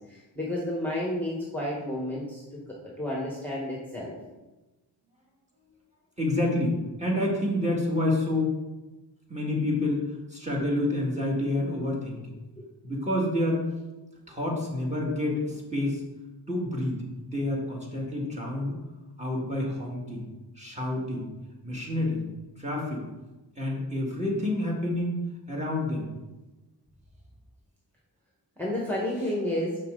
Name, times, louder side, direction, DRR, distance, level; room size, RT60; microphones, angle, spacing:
voice 1, 0.1-2.4 3.0-4.2 12.6-12.7 28.6-29.8, left 1 dB, 5° left, -4 dB, 1.2 m, -31 dB
voice 2, 6.2-8.6 9.3-12.4 12.8-13.6 14.3-16.0 16.5-18.7 19.2-20.2 20.6-21.3 21.6-22.2 22.6-23.0 23.6-25.2 25.5-26.1, left 1 dB, 15° right, -3 dB, 1.8 m, -28 dB
6.4 x 5.7 x 3.8 m, 1.1 s
wide cardioid pair, 95°, 44 cm